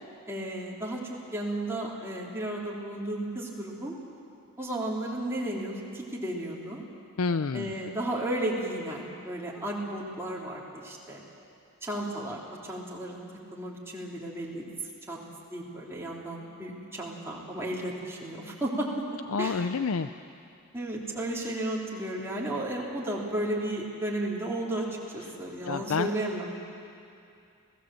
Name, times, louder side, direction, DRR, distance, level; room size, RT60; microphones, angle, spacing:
voice 1, 0.3-4.0 4.6-6.8 7.5-11.3 11.8-13.2 13.5-15.2 15.5-19.6 20.7-26.5, right 1 dB, 10° right, -4 dB, 3.4 m, -34 dB
voice 2, 7.2-7.7 19.3-20.1 25.7-26.1, left 5 dB, 75° left, 10 dB, 0.5 m, -28 dB
29.0 x 17.5 x 7.7 m, 2.5 s
head